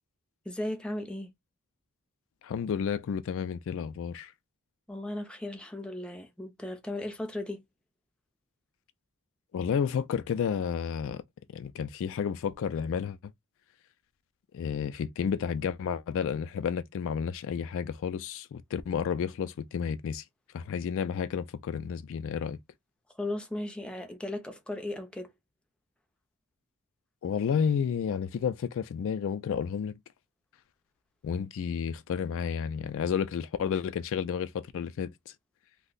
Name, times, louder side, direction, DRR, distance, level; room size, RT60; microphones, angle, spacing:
voice 1, 0.5-1.3 4.9-7.6 23.2-25.3, left 1 dB, 5° left, 0.5 m, -36 dB
voice 2, 2.4-4.3 9.5-11.2 11.5-13.3 14.5-20.2 20.5-22.6 27.2-30.0 31.2-35.3, left 7 dB, 60° left, 0.3 m, -31 dB
2.6 x 2.1 x 3.7 m
head